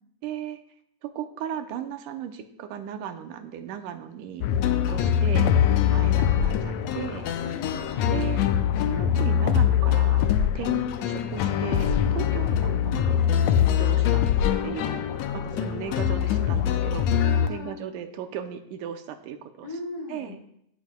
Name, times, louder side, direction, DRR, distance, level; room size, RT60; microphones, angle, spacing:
voice 1, 0.2-0.6 1.0-4.5 4.9-5.6 5.9-7.3 8.1-8.4 8.9-10.3 10.6-13.2 13.7-14.2 14.6-15.0 15.3-17.2 17.5-19.8 20.1-20.4, right 9 dB, 85° right, 7 dB, 2.2 m, -36 dB
sound 1, 4.4-17.5, left 9 dB, 85° left, 1.5 m, -23 dB
voice 2, 5.6-6.0 7.4-8.3 12.0-12.4 17.2-17.8 19.6-20.4, left 3 dB, 60° left, -2 dB, 2.9 m, -38 dB
16.5 x 9.1 x 2.2 m, 0.74 s
omnidirectional pair, 3.7 m